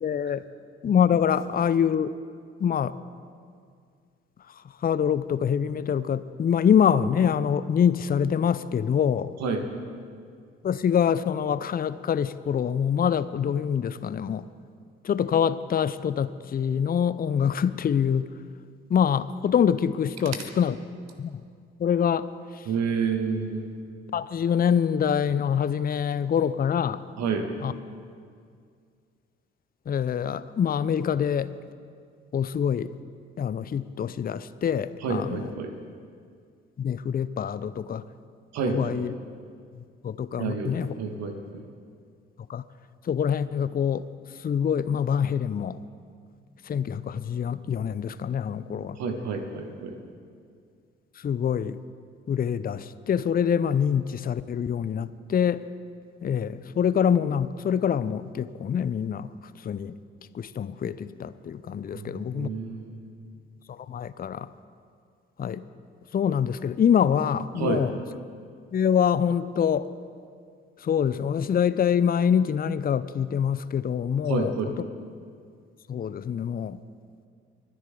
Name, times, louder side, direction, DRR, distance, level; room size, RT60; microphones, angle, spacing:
voice 1, 0.0-0.4 0.8-2.1 2.6-2.9 4.8-9.3 10.6-14.5 15.0-18.3 18.9-20.7 21.2-21.4 21.8-22.2 22.5-22.6 24.1-27.0 27.6-27.7 29.9-31.5 32.3-32.9 33.4-35.5 36.8-38.0 38.7-39.1 39.8-40.9 42.5-42.6 43.0-44.1 44.4-45.8 46.7-49.0 51.2-51.8 52.3-55.6 56.2-59.3 59.6-59.9 60.3-62.5 63.7-64.5 65.4-65.6 66.1-67.9 68.7-69.9 70.8-74.7 75.9-76.8, left 8 dB, 30° left, 15 dB, 0.5 m, -25 dB
voice 2, 22.7-23.7 27.2-27.5 35.0-35.7 38.5-38.9 40.4-41.6 49.0-50.0 61.9-63.3 67.6-67.9 74.3-74.7, right 4 dB, 65° right, 5 dB, 1.6 m, -29 dB
24.5 x 10.5 x 3.8 m, 2.2 s
hypercardioid pair, 45°, 29 cm